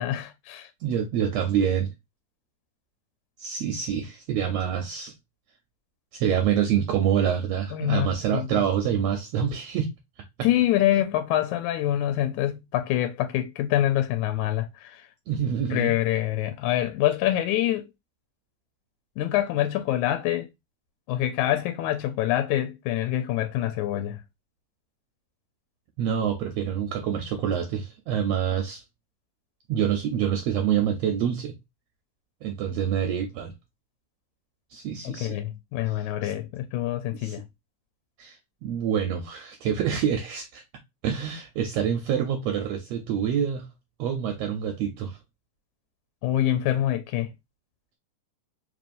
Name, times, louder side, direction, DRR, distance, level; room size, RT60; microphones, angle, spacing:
voice 1, 0.0-0.7 7.7-8.7 10.4-15.1 15.7-17.9 19.2-20.5 21.1-24.2 35.1-37.4 46.2-47.3, left 13 dB, 80° left, 1.9 m, -25 dB
voice 2, 0.8-1.9 3.4-5.1 6.1-9.9 15.3-15.9 26.0-28.8 29.7-31.5 32.4-33.5 34.7-35.4 36.2-36.3 37.2-37.4 38.2-38.4 38.6-40.6 41.0-43.7 44.0-45.2, right 8 dB, 80° right, 1.5 m, -26 dB
4.4 x 3.0 x 2.5 m
omnidirectional pair, 3.6 m